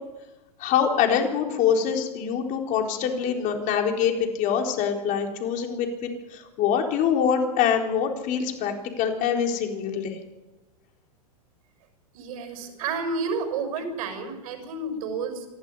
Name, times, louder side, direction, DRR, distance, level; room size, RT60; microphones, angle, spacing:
voice 1, 0.6-10.2, left 7 dB, 40° left, 2 dB, 4.2 m, -24 dB
voice 2, 12.1-15.5, right 4 dB, 65° right, 6 dB, 6.8 m, -30 dB
27.0 x 12.5 x 9.9 m, 1.1 s
hypercardioid pair, 110°, 20 cm